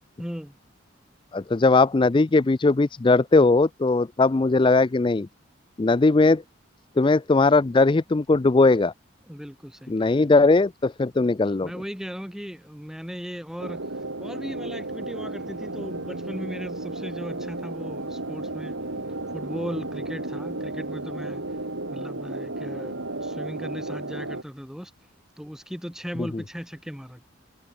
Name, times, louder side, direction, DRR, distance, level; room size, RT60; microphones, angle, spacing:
voice 1, 0.2-0.6 9.3-10.3 11.6-18.8 19.3-21.4 21.9-24.9 25.4-27.3, equal, 5° right, 7.1 m, -37 dB
voice 2, 1.3-5.3 5.8-6.4 7.0-8.9 9.9-11.7 26.2-26.4, left 3 dB, 25° left, 0.4 m, -19 dB
sound 1, 13.6-24.4, right 2 dB, 75° right, 3.1 m, -33 dB
head